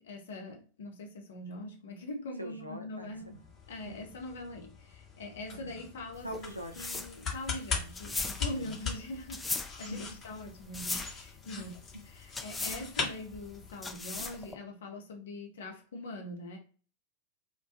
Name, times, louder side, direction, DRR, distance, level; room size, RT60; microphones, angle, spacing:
voice 1, 0.0-6.3 6.8-11.8 12.0-16.6, left 2 dB, 60° left, 0.8 m, -43 dB
voice 2, 2.4-3.1 3.8-4.0 5.5-5.7 6.2-6.9 8.6-8.7 9.9-10.0, right 1 dB, 90° right, 0.4 m, -42 dB
sound 1, 3.1-13.9, left 5 dB, 30° left, 0.9 m, -41 dB
sound 2, 6.1-14.5, left 3 dB, 10° left, 0.3 m, -39 dB
2.2 x 2.1 x 2.7 m
figure-of-eight pair, 90°, 0 cm